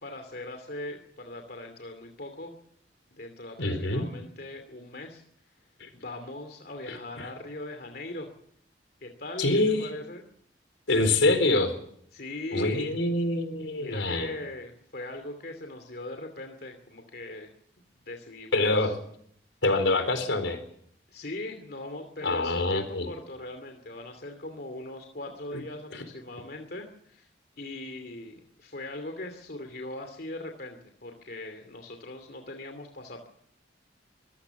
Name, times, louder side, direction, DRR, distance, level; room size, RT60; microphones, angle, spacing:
voice 1, 0.0-2.6 3.1-5.2 5.9-8.3 9.0-10.3 12.1-13.0 13.8-17.5 18.0-18.9 21.1-27.3 27.6-33.3, left 2 dB, 55° left, 5 dB, 2.6 m, -40 dB
voice 2, 3.6-4.0 5.8-5.9 6.9-7.3 9.4-9.8 10.9-11.7 12.5-14.3 18.5-18.9 19.6-20.6 22.2-23.1 25.5-25.6 25.9-26.0, left 2 dB, 85° left, 8 dB, 4.3 m, -25 dB
24.0 x 16.5 x 7.1 m, 0.67 s
head